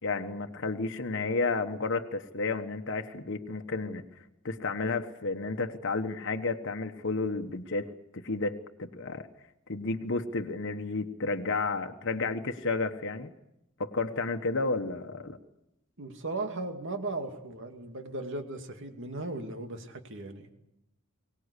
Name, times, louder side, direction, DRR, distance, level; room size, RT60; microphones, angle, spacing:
voice 1, 0.0-4.0 4.4-8.5 8.8-9.3 9.7-13.3 13.8-15.4, left 3 dB, 60° left, 5 dB, 1.2 m, -32 dB
voice 2, 16.0-20.5, right 2 dB, 60° right, 6 dB, 2.3 m, -37 dB
23.5 x 18.5 x 8.3 m, 0.86 s
head